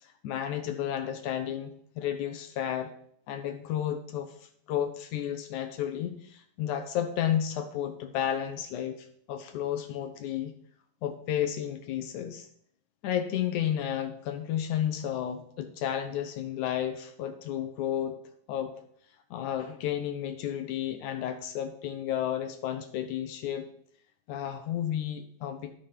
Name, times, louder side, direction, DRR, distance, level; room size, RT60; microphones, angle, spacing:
voice 1, 0.0-2.9 3.3-4.3 4.7-10.5 11.0-12.5 13.0-18.2 18.5-18.7 19.3-23.7 24.3-25.7, left 10 dB, 75° left, 8 dB, 2.0 m, -32 dB
13.0 x 5.1 x 5.7 m, 0.63 s
omnidirectional pair, 4.0 m